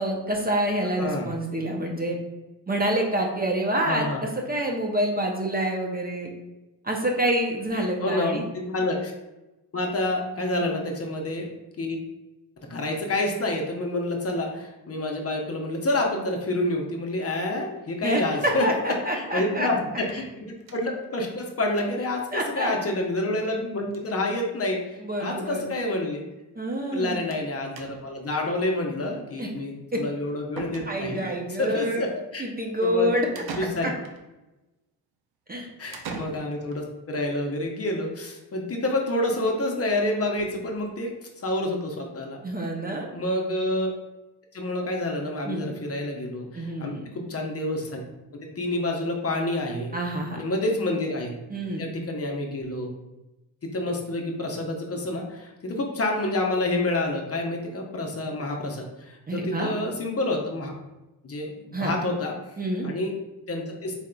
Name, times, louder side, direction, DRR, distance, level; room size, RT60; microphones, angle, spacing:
voice 1, 0.0-2.2 2.7-6.3 6.8-8.4 10.6-10.7 18.0-19.7 22.3-22.7 25.0-25.6 26.6-27.2 29.4-29.5 29.9-30.0 30.9-32.1 32.4-33.3 33.8-33.9 35.5-35.7 42.4-43.1 45.5-45.7 46.6-47.0 49.9-50.4 51.5-51.8 59.3-59.7 61.7-61.9 62.6-62.9, right 1 dB, 20° right, 0 dB, 0.6 m, -27 dB
voice 2, 1.0-1.3 3.8-4.2 7.7-9.1 9.7-11.5 11.8-12.0 12.7-18.7 19.1-26.2 26.9-31.3 31.6-32.4 32.8-33.1 33.6-33.9 35.8-41.1 41.4-42.4 43.1-43.9 44.5-48.0 48.4-49.9 50.3-51.3 51.8-52.9 53.6-60.7 61.2-62.3 62.8-63.1 63.5-63.9, left 1 dB, 35° left, 1 dB, 0.8 m, -28 dB
sound 1, 20.0-21.1 21.4-21.5 21.8-21.9 22.1-22.2 23.4-23.6 23.9-24.2 25.1-25.2 25.5-25.6 27.3-27.5 27.8-28.2 30.0-30.1 30.6-31.3 33.4-34.2 35.9-36.8, right 4 dB, 55° right, 0.8 m, -40 dB
4.2 x 3.6 x 2.3 m, 1.0 s
cardioid pair, 75°, 44 cm